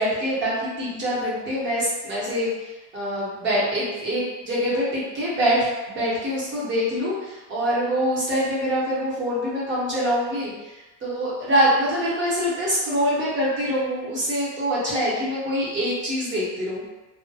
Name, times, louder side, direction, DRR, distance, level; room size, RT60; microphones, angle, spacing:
voice 1, 0.0-2.5 2.9-10.5 11.0-16.8, equal, 30° right, -7 dB, 0.9 m, -24 dB
2.2 x 2.1 x 2.7 m, 1.1 s
cardioid pair, 150°, 36 cm